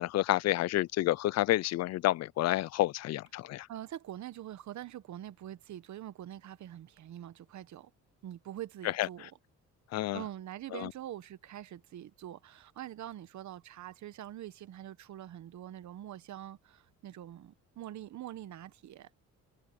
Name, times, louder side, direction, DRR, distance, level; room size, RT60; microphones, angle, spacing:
voice 1, 0.0-3.7 9.0-9.1 9.9-10.2 10.7-10.9, left 16 dB, 55° left, 0.4 m, -29 dB
voice 2, 3.7-7.9 8.2-9.3 10.1-19.1, right 12 dB, 60° right, 1.0 m, -44 dB
cardioid pair, 100°, 32 cm